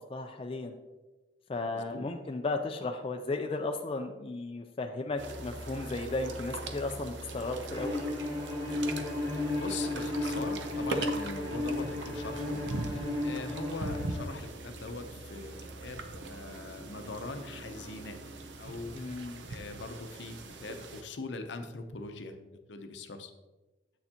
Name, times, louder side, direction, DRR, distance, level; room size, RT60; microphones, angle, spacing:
voice 1, 0.1-0.7 1.5-8.0 18.9-19.4, left 2 dB, 30° left, 4 dB, 0.4 m, -35 dB
voice 2, 1.7-2.0 8.9-12.6 12.9-18.3 18.6-23.3, left 3 dB, 70° left, 7 dB, 0.7 m, -42 dB
sound 1, 5.2-21.0, right 2 dB, 70° right, 0.7 m, -41 dB
Bowed string instrument, 7.7-14.3, left 2 dB, 25° right, 2.6 m, -34 dB
8.0 x 6.6 x 2.9 m, 1.1 s
head